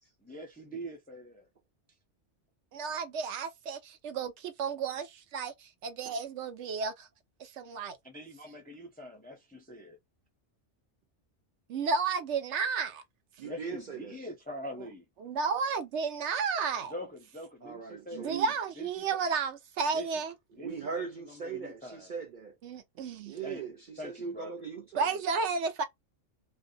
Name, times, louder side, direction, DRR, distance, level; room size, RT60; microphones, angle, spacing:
voice 1, 0.2-1.5 8.0-10.0 13.4-15.0 16.9-18.4 18.8-19.0 19.9-20.1 20.5-22.1 23.4-23.7 24.0-24.5, equal, 15° left, 0.4 m, -44 dB
voice 2, 2.7-7.1 7.4-8.0 11.7-13.0 15.2-16.9 18.1-20.3 22.6-23.3 25.0-25.8, right 5 dB, 75° right, 0.9 m, -32 dB
voice 3, 13.4-14.2 17.6-18.5 20.6-22.5 23.3-25.1, right 6 dB, 60° right, 0.5 m, -39 dB
2.5 x 2.2 x 2.5 m
omnidirectional pair, 1.2 m